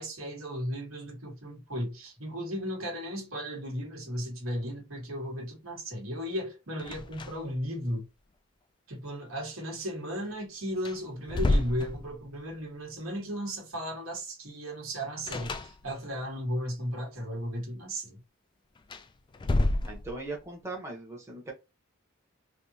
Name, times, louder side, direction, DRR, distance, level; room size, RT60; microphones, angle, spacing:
voice 1, 0.0-8.1 8.9-18.2, equal, 80° right, 1.6 m, -35 dB
sound 1, 6.8-7.6 7.9-8.0 10.2-10.3 10.8-12.5 15.3-16.2 18.7-20.4, left 2 dB, 20° left, 0.3 m, -30 dB
voice 2, 19.9-21.5, right 2 dB, 15° right, 0.8 m, -39 dB
3.5 x 2.6 x 2.7 m
head